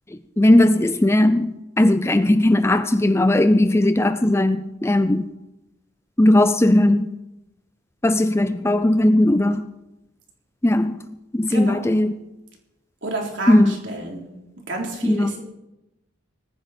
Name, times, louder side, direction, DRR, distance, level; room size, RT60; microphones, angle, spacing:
voice 1, 0.4-5.3 6.2-7.1 8.0-9.6 10.6-11.0 11.3-12.1 13.5-13.7 15.0-15.3, left 1 dB, 10° left, 11 dB, 0.4 m, -17 dB
voice 2, 11.5-11.9 13.0-14.3 14.7-15.4, right 2 dB, 55° right, 0 dB, 3.7 m, -29 dB
19.5 x 14.5 x 4.3 m, 0.96 s
head